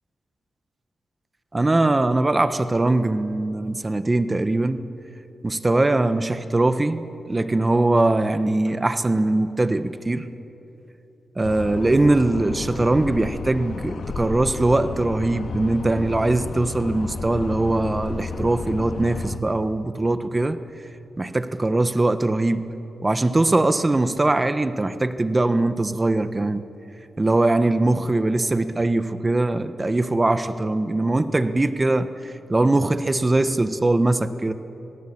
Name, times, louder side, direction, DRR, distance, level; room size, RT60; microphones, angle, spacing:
voice 1, 1.5-4.9 5.4-10.3 11.4-20.6 21.2-22.7 23.0-26.7 27.2-34.5, right 2 dB, 25° right, 11 dB, 1.2 m, -21 dB
sound 1, 11.4-19.4, left 4 dB, 80° left, 1.9 m, -32 dB
26.5 x 18.5 x 8.7 m, 3.0 s
cardioid pair, 75°, 0 cm